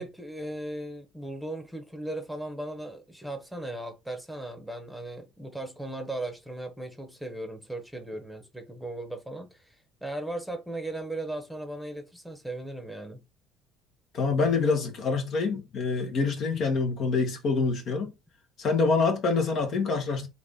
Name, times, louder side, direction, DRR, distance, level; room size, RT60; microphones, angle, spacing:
voice 1, 0.0-13.2, right 1 dB, ahead, 1.0 m, -37 dB
voice 2, 14.1-18.1 18.6-20.3, left 4 dB, 55° left, 1.2 m, -26 dB
3.7 x 2.6 x 3.6 m
supercardioid pair, 80°, 0 cm